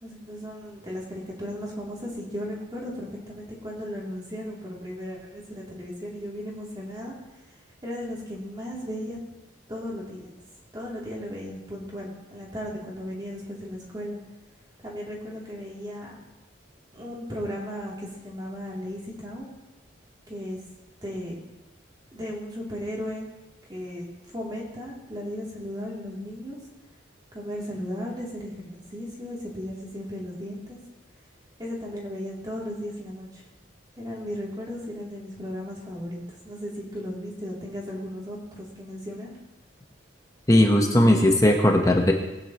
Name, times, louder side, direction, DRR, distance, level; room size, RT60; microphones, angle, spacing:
voice 1, 0.0-7.1 7.8-9.2 9.7-10.3 10.7-14.2 14.8-16.2 16.9-19.5 20.3-20.6 21.0-21.4 22.1-23.3 23.7-26.6 27.3-30.8 31.6-33.4 34.0-39.3, equal, 20° right, -5 dB, 3.0 m, -36 dB
voice 2, 40.5-42.1, left 1 dB, 15° left, 2 dB, 1.1 m, -18 dB
20.0 x 9.9 x 3.1 m, 1.0 s
head